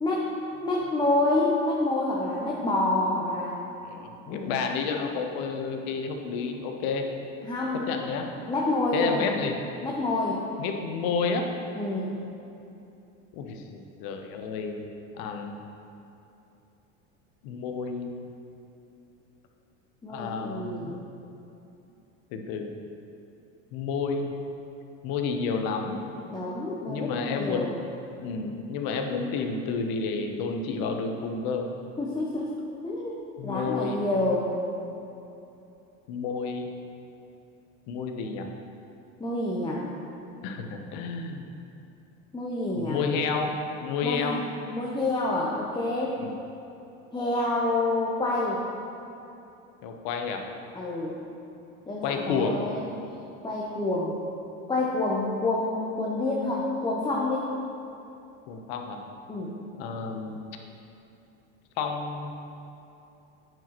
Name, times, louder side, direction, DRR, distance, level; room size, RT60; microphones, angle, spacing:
voice 1, 0.0-0.3 0.6-3.6 4.3-4.5 7.4-7.8 8.5-9.3 9.8-10.4 11.8-12.2 20.0-21.0 26.3-27.7 32.0-32.5 32.8-34.6 39.2-39.8 42.3-43.0 44.0-44.4 44.7-46.1 47.1-48.6 50.7-51.2 51.9-52.9 53.4-54.2 54.7-57.5 59.3-59.6, left 2 dB, 10° left, -4 dB, 0.8 m, -28 dB
voice 2, 3.8-7.0 7.9-8.3 8.9-9.6 10.6-11.5 13.3-14.9 15.2-15.6 17.4-18.1 20.1-21.0 22.3-22.7 23.7-24.3 25.0-26.0 26.9-27.7 28.1-31.7 33.4-34.0 36.1-36.7 37.9-38.5 40.4-41.5 42.7-43.5 43.8-44.4 46.2-46.3 49.8-50.4 52.0-52.7 58.5-59.0 59.8-60.4 61.8-62.3, left 5 dB, 60° left, 4 dB, 0.9 m, -30 dB
9.0 x 6.0 x 3.0 m, 2.8 s
supercardioid pair, 95°, 40 cm